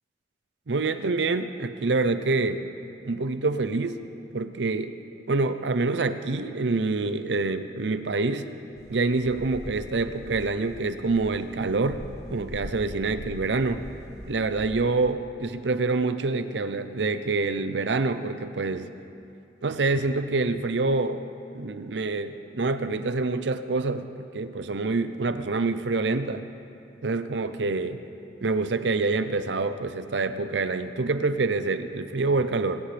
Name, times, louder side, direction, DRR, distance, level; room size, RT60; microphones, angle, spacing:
voice 1, 0.7-2.6 3.1-4.0 4.3-4.9 5.3-8.5 8.9-12.0 12.3-13.9 14.3-18.9 19.6-21.2 21.5-26.4 27.0-28.0 28.4-32.8, right 3 dB, 85° right, 11 dB, 0.6 m, -26 dB
sound 1, 8.8-15.0, equal, 60° left, 1.4 m, -42 dB
21.5 x 17.0 x 3.4 m, 2.6 s
head